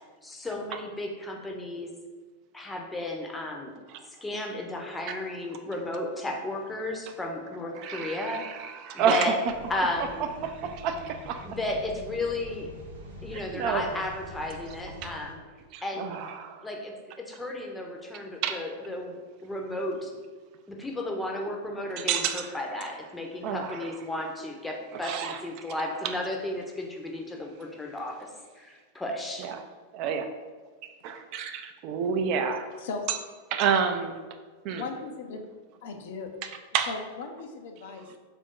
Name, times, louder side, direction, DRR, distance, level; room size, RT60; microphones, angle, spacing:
voice 1, 0.2-1.9 2.5-3.7 4.2-8.4 8.9-9.4 9.7-10.2 11.4-12.7 13.2-15.4 15.8-16.2 16.6-20.1 20.7-28.3 28.6-29.5, left 1 dB, 10° left, 1 dB, 0.6 m, -33 dB
voice 2, 7.8-9.3 10.4-11.5 13.3-13.8 15.0-15.1 15.7-16.7 18.4-18.6 22.0-22.5 23.4-23.9 24.9-25.6 29.4-29.6 29.9-30.3 31.0-32.7 33.1-33.2 33.5-34.2 34.6-34.9 36.7-36.9, right 7 dB, 50° right, 7 dB, 0.3 m, -29 dB
sound 1, 9.4-15.3, left 1 dB, 80° right, 0.8 m, -45 dB
voice 3, 32.8-33.2 34.7-35.4 35.8-36.3 36.9-38.1, left 4 dB, 65° left, 4 dB, 0.4 m, -37 dB
3.5 x 2.5 x 3.7 m, 1.4 s
hypercardioid pair, 95°, 0 cm